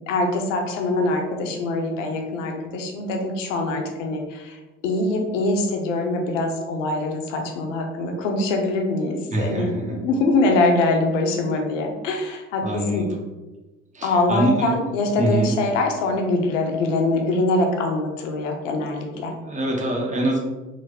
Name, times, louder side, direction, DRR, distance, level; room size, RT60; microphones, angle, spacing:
voice 1, 0.1-4.6 4.8-13.1 14.0-19.3, left 2 dB, 90° left, 2 dB, 0.5 m, -23 dB
voice 2, 9.3-10.0 12.6-13.2 13.9-14.7 15.2-15.5 19.4-20.4, right 1 dB, 20° right, -2 dB, 0.9 m, -24 dB
3.2 x 2.0 x 3.3 m, 1.1 s
hypercardioid pair, 55°, 36 cm